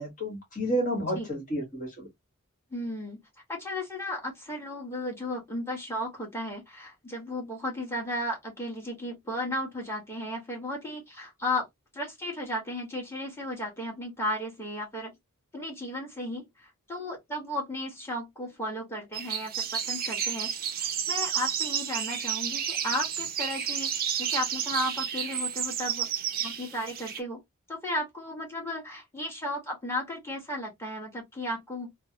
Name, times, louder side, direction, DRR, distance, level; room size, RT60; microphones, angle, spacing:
voice 1, 0.0-2.1, equal, 40° left, 1.6 m, -31 dB
voice 2, 2.7-3.2 3.5-11.7 11.9-15.1 15.5-26.1 26.4-27.4 27.7-31.9, left 1 dB, 10° left, 1.5 m, -34 dB
sound 1, 19.1-27.2, right 9 dB, 45° right, 0.6 m, -31 dB
3.2 x 2.1 x 2.9 m
head